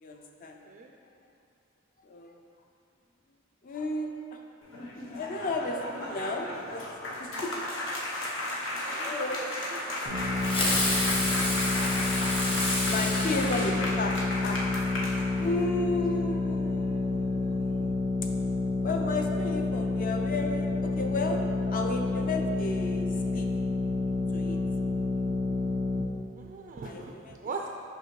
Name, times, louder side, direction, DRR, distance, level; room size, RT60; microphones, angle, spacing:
voice 1, 0.0-0.6 2.0-2.4 3.6-4.4 5.0-7.7 8.8-9.4 12.9-14.6 15.4-18.0 18.8-21.4 21.7-23.5 24.3-24.6 26.8-27.4, left 2 dB, 45° left, 3 dB, 0.5 m, -34 dB
sound 1, 4.6-15.6, left 1 dB, 85° left, 0.9 m, -34 dB
voice 2, 8.9-9.8 26.4-27.7, right 4 dB, 40° right, 1 dB, 0.3 m, -41 dB
sound 2, 10.0-26.0, left 3 dB, 70° left, 1.5 m, -29 dB
Fireworks, 10.4-14.3, left 2 dB, 30° left, 0.9 m, -30 dB
5.7 x 5.4 x 3.1 m, 2.4 s
head